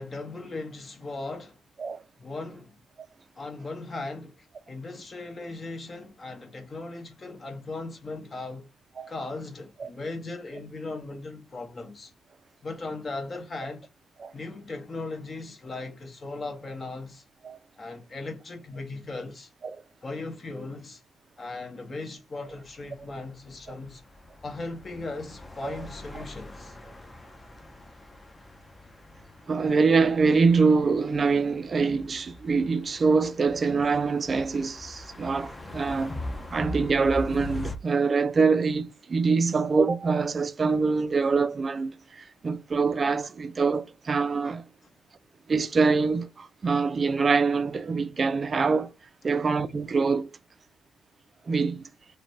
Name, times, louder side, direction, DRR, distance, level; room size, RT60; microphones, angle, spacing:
voice 1, 0.0-1.6 2.2-2.8 3.4-8.6 9.1-12.1 12.6-13.9 14.3-17.2 17.8-19.5 20.0-21.0 21.4-24.0 24.4-26.8 49.3-49.4, left 3 dB, 35° left, 1.1 m, -38 dB
sound 1, 22.5-37.8, left 2 dB, 15° left, 0.7 m, -42 dB
voice 2, 29.5-36.2 36.5-44.6 45.5-48.9 49.2-50.3 51.5-51.9, right 4 dB, 35° right, 0.4 m, -24 dB
3.1 x 2.2 x 3.9 m
cardioid pair, 90°, 0 cm